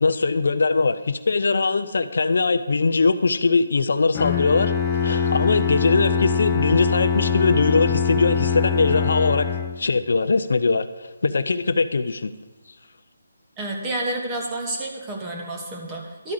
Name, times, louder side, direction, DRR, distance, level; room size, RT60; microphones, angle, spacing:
voice 1, 0.0-4.7 5.0-9.5 9.8-12.3, left 4 dB, 70° left, 12 dB, 0.5 m, -21 dB
Bowed string instrument, 4.1-10.0, left 6 dB, 20° left, 0.9 m, -23 dB
voice 2, 13.6-16.3, right 1 dB, 15° right, -1 dB, 1.5 m, -29 dB
12.0 x 4.8 x 7.8 m, 1.2 s
figure-of-eight pair, 160°, 0 cm